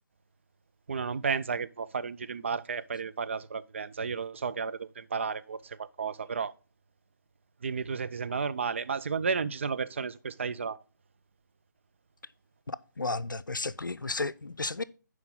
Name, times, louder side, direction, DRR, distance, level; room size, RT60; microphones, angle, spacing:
voice 1, 0.9-6.5 7.6-10.8, right 5 dB, 40° right, 0.4 m, -33 dB
voice 2, 12.7-14.8, left 3 dB, 80° left, 0.5 m, -33 dB
11.0 x 4.6 x 3.7 m
figure-of-eight pair, 145°, 11 cm